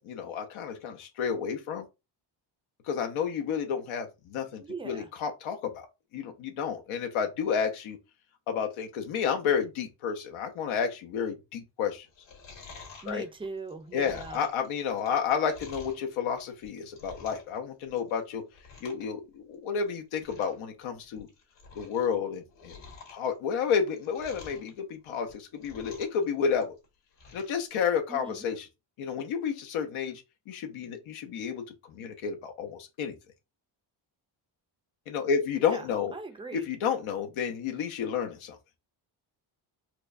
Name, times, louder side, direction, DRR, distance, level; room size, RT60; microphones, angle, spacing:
voice 1, 0.0-1.8 2.9-5.9 6.1-8.0 8.5-12.1 13.1-13.2 13.9-18.4 18.8-21.3 21.8-22.7 23.1-26.8 27.3-28.7 29.0-30.2 30.5-33.1 35.1-36.1 36.5-38.6, left 7 dB, 85° left, 0.8 m, -31 dB
voice 2, 4.6-5.1 13.0-14.5 28.1-28.5 35.6-35.9 36.1-36.6, right 3 dB, 15° right, 0.3 m, -40 dB
Chewing mastication, 12.1-16.0 16.5-17.6 17.8-18.2 18.5-19.1 19.3-19.4 19.9-20.0 20.2-20.6 21.0-22.1 22.3-24.7 25.2-26.2 26.5-27.6 28.0-28.1, left 4 dB, 60° left, 1.7 m, -49 dB
4.4 x 2.2 x 2.5 m
cardioid pair, 135°, 48 cm